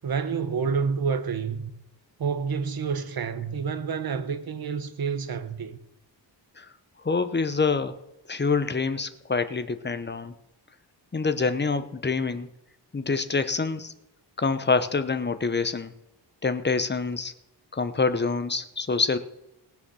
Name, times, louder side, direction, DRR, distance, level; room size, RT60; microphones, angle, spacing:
voice 1, 0.0-1.7 2.2-5.8, right 6 dB, 50° right, 1.1 m, -28 dB
voice 2, 7.0-8.0 8.3-10.3 11.1-12.5 12.9-13.9 14.4-15.9 16.4-17.3 17.7-19.2, left 4 dB, 25° left, 0.9 m, -26 dB
18.5 x 7.0 x 6.3 m
wide cardioid pair, 120°, 45 cm